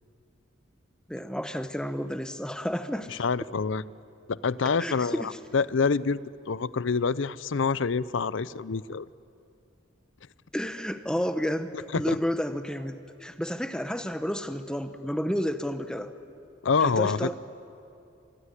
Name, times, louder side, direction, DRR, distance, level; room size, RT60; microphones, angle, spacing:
voice 1, 1.1-3.2 4.6-5.4 10.5-16.1 16.8-17.3, equal, 5° left, 9 dB, 0.9 m, -31 dB
voice 2, 3.2-3.8 4.3-5.2 5.5-6.2 6.5-9.1 11.9-12.2 16.6-17.3, left 5 dB, 75° left, 19 dB, 0.5 m, -26 dB
26.0 x 19.5 x 9.9 m, 2.6 s
head